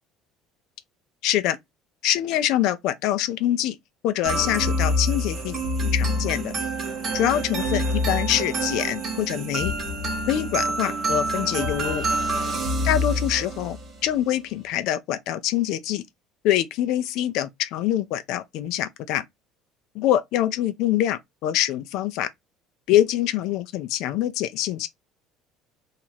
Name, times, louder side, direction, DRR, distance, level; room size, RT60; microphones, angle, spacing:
voice 1, 1.2-1.6 2.0-3.8 4.0-6.5 7.1-9.7 10.3-12.0 12.8-13.8 14.0-16.0 16.4-19.2 19.9-22.3 22.9-24.9, left 12 dB, 65° left, 0.4 m, -24 dB
sound 1, 4.2-13.9, equal, 25° right, 1.2 m, -26 dB
2.9 x 2.5 x 4.2 m
cardioid pair, 150°, 0 cm